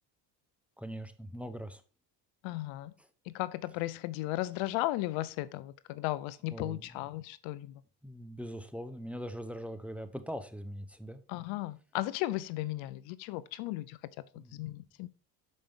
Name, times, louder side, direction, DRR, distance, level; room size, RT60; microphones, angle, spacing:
voice 1, 0.8-1.8 6.5-6.8 8.0-11.2 14.4-14.6, equal, 5° right, 0.8 m, -41 dB
voice 2, 2.4-2.9 3.3-7.7 11.3-14.0 14.3-15.1, left 17 dB, 70° left, 0.5 m, -35 dB
6.7 x 5.1 x 3.8 m
hypercardioid pair, 65°, 49 cm